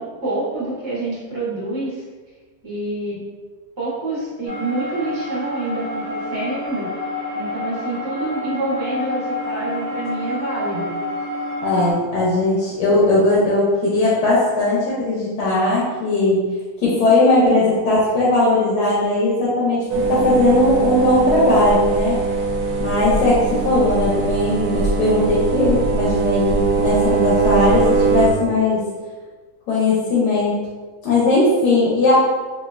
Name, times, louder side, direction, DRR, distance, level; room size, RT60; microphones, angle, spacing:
voice 1, 0.0-2.0 2.6-3.2 3.8-6.9 7.3-10.9, right 2 dB, 25° right, -8 dB, 0.6 m, -27 dB
sound 1, 4.5-11.9, left 2 dB, 60° right, 0.8 m, -28 dB
voice 2, 11.6-16.5 16.8-22.2 22.8-28.8 29.7-30.5 31.0-32.1, left 2 dB, 80° left, -7 dB, 1.3 m, -18 dB
sound 2, 19.9-28.3, right 4 dB, 80° right, 1.1 m, -20 dB
3.1 x 2.7 x 2.3 m, 1.3 s
omnidirectional pair, 1.8 m